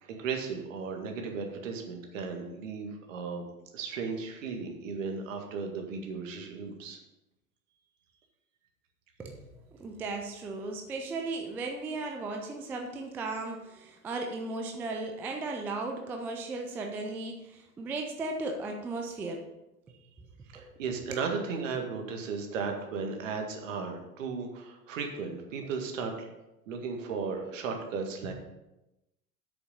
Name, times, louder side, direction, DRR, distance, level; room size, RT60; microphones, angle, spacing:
voice 1, 0.0-3.5 3.7-7.0 20.5-26.3 26.7-28.3, right 5 dB, 60° right, 3 dB, 1.9 m, -35 dB
voice 2, 9.2-19.4 19.9-20.3 20.5-20.8 21.1-21.2, right 3 dB, 5° right, 3 dB, 0.3 m, -36 dB
8.0 x 6.7 x 5.5 m, 0.95 s
figure-of-eight pair, 85°, 44 cm